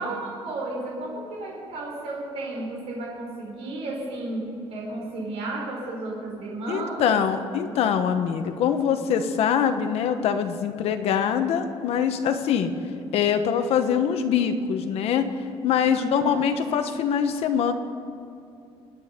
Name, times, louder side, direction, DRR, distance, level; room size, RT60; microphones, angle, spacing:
voice 1, 0.0-7.2 15.8-16.5, right 2 dB, 65° right, -2 dB, 4.5 m, -33 dB
voice 2, 6.7-12.7 13.1-15.3 15.6-17.7, left 8 dB, 70° left, 7 dB, 1.2 m, -23 dB
28.0 x 9.9 x 5.2 m, 2.6 s
cardioid pair, 170°, 11 cm